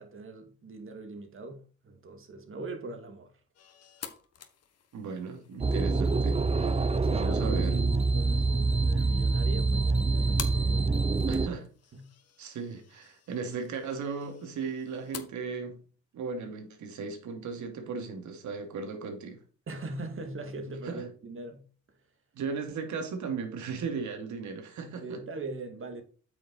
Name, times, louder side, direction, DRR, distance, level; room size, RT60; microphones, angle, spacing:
voice 1, 0.0-3.3 6.8-11.0 11.9-12.1 19.7-21.6 25.0-26.0, right 2 dB, 45° right, 2.4 m, -41 dB
sound 1, 3.5-15.2, left 8 dB, 55° left, 1.5 m, -48 dB
voice 2, 4.9-6.8 7.1-7.8 11.3-11.7 12.4-15.8 16.1-19.4 20.8-21.1 22.3-25.2, right 5 dB, 75° right, 2.5 m, -36 dB
sound 2, 5.6-11.5, right 3 dB, 20° right, 0.7 m, -26 dB
8.6 x 6.2 x 4.4 m
cardioid pair, 90°, 30 cm